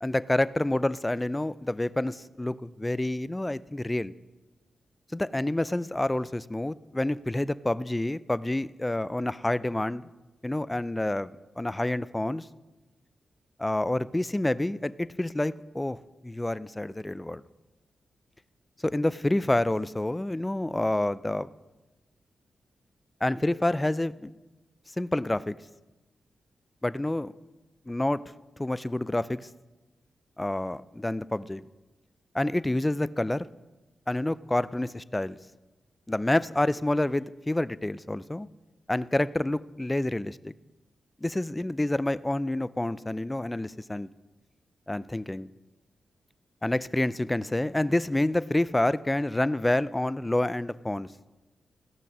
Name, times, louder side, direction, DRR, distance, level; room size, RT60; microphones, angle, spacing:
voice 1, 0.0-4.1 5.1-10.1 10.4-12.5 13.6-16.0 16.2-17.4 18.8-21.5 23.2-24.3 25.0-25.6 26.8-27.3 27.9-28.2 28.6-29.5 30.4-31.6 32.3-33.5 34.1-35.4 36.1-38.5 38.9-40.5 41.2-44.1 44.9-45.5 46.6-51.1, left 1 dB, 15° left, 17 dB, 0.4 m, -28 dB
16.5 x 6.0 x 6.0 m, 1.1 s
cardioid pair, 65°, 0 cm